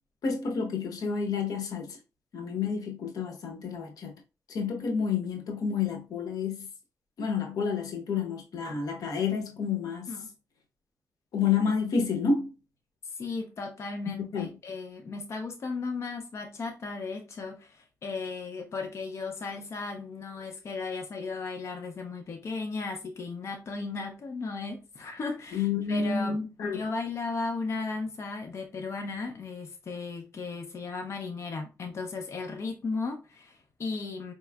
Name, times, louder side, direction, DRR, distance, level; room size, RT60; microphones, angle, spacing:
voice 1, 0.2-2.0 2.3-4.2 4.5-6.7 7.2-10.1 11.3-12.5 14.3-14.5 25.5-26.8, left 5 dB, 85° left, 0.9 m, -29 dB
voice 2, 13.2-26.4 26.6-34.3, left 4 dB, 50° left, 0.6 m, -36 dB
4.3 x 3.0 x 2.3 m
wide cardioid pair, 135°, 6 cm